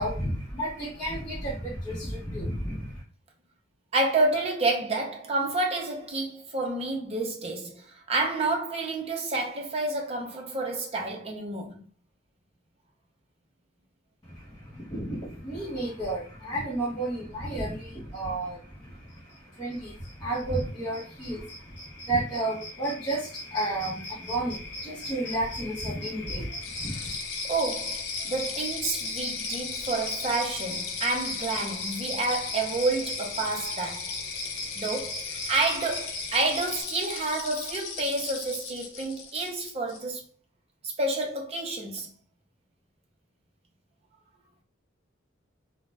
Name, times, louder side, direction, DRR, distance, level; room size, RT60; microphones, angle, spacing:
voice 1, 0.0-3.0 14.2-27.1, right 1 dB, 20° left, 0.8 m, -32 dB
voice 2, 3.9-11.8 27.4-34.1 34.7-40.2 40.8-42.1, right 2 dB, 30° right, 0.5 m, -29 dB
sound 1, 19.7-19.8 20.0-36.8, left 1 dB, 60° left, 0.9 m, -39 dB
sound 2, 26.6-40.0, left 5 dB, 85° left, 0.6 m, -37 dB
2.4 x 2.0 x 3.2 m
head